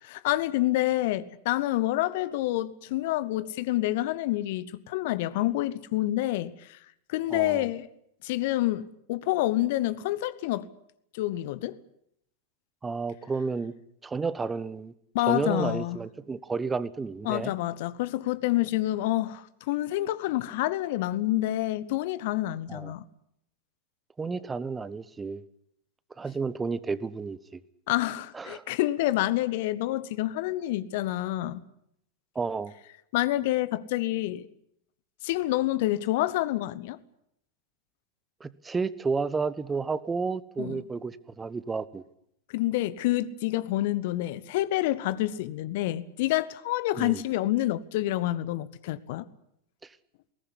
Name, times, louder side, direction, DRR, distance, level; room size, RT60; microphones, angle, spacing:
voice 1, 0.0-6.8 7.1-7.9 8.2-10.7 11.1-11.8 15.1-16.0 17.2-23.0 27.9-31.6 33.1-34.5 35.2-37.0 40.6-40.8 42.5-49.3, left 15 dB, 50° left, 1.1 m, -28 dB
voice 2, 7.3-7.7 12.8-13.7 14.0-14.9 15.2-17.5 22.7-22.9 24.2-25.4 26.2-27.6 28.3-28.6 32.3-32.7 38.4-42.0 47.0-47.2, right 4 dB, 15° right, 1.1 m, -31 dB
21.0 x 19.0 x 9.8 m
figure-of-eight pair, 90°, 0 cm